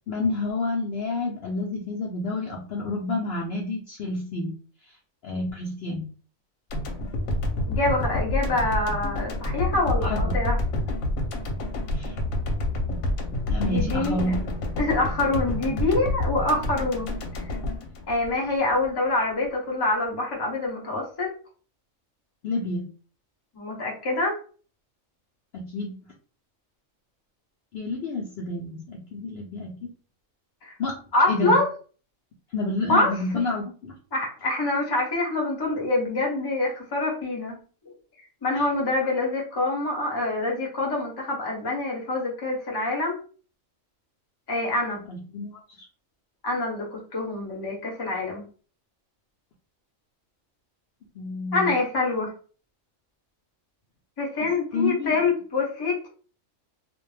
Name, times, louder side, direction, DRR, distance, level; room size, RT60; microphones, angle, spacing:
voice 1, 0.1-4.5 5.2-6.1 10.0-10.4 11.9-12.2 13.5-14.4 22.4-22.9 25.5-26.1 27.7-29.9 30.8-31.0 31.3-31.6 32.5-33.9 38.6-38.7 45.1-45.6 51.1-51.7 54.4-54.5 54.7-55.2, left 2 dB, 60° left, -2 dB, 0.7 m, -29 dB
sound 1, 6.7-18.9, left 1 dB, 80° left, 1.0 m, -28 dB
voice 2, 7.7-10.6 13.6-14.2 14.8-17.5 18.1-21.3 23.5-24.4 30.6-30.7 31.1-31.7 32.9-33.1 34.1-37.6 38.4-43.2 44.5-45.0 46.4-48.5 51.5-52.3 54.2-56.1, left 2 dB, 25° left, -1 dB, 0.6 m, -25 dB
2.4 x 2.1 x 3.1 m, 0.39 s
omnidirectional pair, 1.4 m